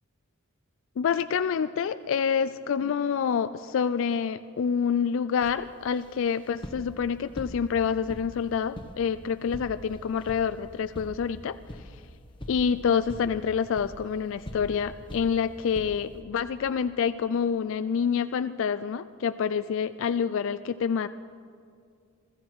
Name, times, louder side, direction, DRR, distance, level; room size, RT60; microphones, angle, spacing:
voice 1, 1.0-12.0 12.5-21.1, left 7 dB, 65° left, 12 dB, 0.3 m, -27 dB
sound 1, 5.4-16.2, equal, 25° left, 1.3 m, -44 dB
21.5 x 13.5 x 4.7 m, 2.4 s
head